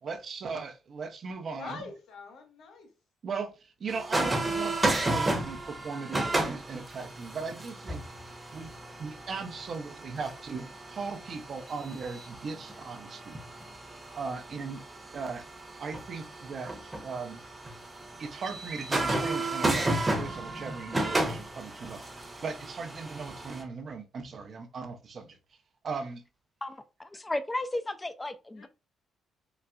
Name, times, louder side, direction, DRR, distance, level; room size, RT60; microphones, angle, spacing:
voice 1, 0.0-1.9 3.2-8.0 8.5-8.7 9.0-13.4 14.1-14.8 15.1-15.5 15.8-17.4 18.2-25.4 25.8-26.2, right 4 dB, 50° right, 0.6 m, -38 dB
voice 2, 1.5-2.9 28.6-28.7, left 4 dB, 75° left, 0.9 m, -44 dB
sound 1, 3.9-23.6, right 2 dB, 15° right, 0.8 m, -33 dB
voice 3, 26.6-28.7, left 1 dB, 15° left, 0.4 m, -34 dB
4.0 x 2.2 x 2.4 m
cardioid pair, 90°, 0 cm